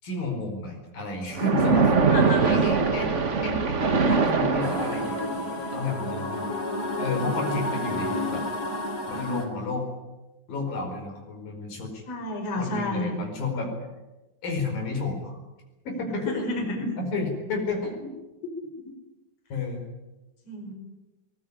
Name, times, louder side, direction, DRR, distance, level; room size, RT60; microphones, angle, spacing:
voice 1, 0.0-3.1 3.4-6.5 7.0-8.5 9.0-9.9 10.5-12.0 12.5-13.7 14.4-15.4 15.8-18.1 18.8-18.9 19.5-19.8, left 3 dB, 75° left, 2 dB, 6.4 m, -31 dB
Splash splatter, 1.3-5.4, right 4 dB, 65° right, 0.7 m, -22 dB
voice 2, 2.1-2.7 5.6-5.8 12.1-13.1 16.2-16.9 20.5-20.7, left 1 dB, 45° left, 2 dB, 6.2 m, -31 dB
sound 1, 4.6-9.5, left 1 dB, 25° left, 4.3 m, -30 dB
22.5 x 20.0 x 9.9 m, 1.1 s
omnidirectional pair, 4.1 m